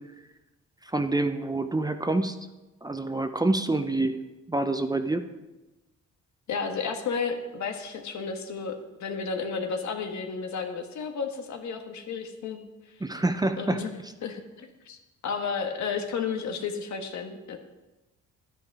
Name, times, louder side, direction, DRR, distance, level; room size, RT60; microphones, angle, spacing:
voice 1, 0.8-2.4 2.8-4.2 4.5-5.3 13.0-13.8, right 2 dB, 15° right, 8 dB, 0.7 m, -27 dB
voice 2, 6.5-8.7 9.0-12.6 13.6-17.6, left 5 dB, 70° left, 5 dB, 1.6 m, -32 dB
11.0 x 9.9 x 4.8 m, 1.1 s
cardioid pair, 90°, 30 cm